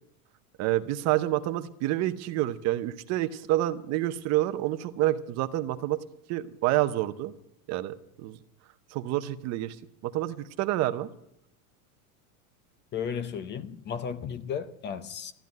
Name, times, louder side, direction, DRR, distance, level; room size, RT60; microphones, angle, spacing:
voice 1, 0.6-6.0 6.3-7.3 7.7-8.4 8.9-9.8 10.0-11.1, right 15 dB, 35° right, 0.8 m, -28 dB
voice 2, 12.9-15.3, left 7 dB, 25° left, 0.7 m, -34 dB
13.5 x 10.0 x 9.4 m
supercardioid pair, 150°, 44 cm